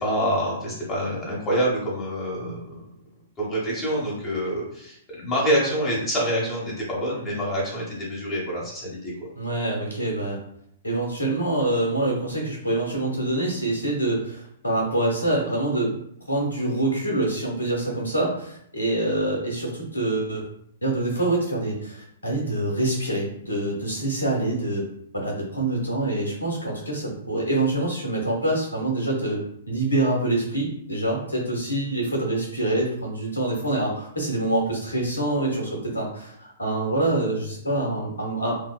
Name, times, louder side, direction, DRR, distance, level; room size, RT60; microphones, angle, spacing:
voice 1, 0.0-2.9 3.4-9.3, equal, 20° left, -5 dB, 1.0 m, -26 dB
voice 2, 9.3-10.4 10.8-15.9 16.3-20.5 20.8-24.9 25.1-38.5, right 2 dB, 75° left, -1 dB, 0.8 m, -25 dB
2.7 x 2.0 x 2.2 m, 0.70 s
figure-of-eight pair, 110°, 0 cm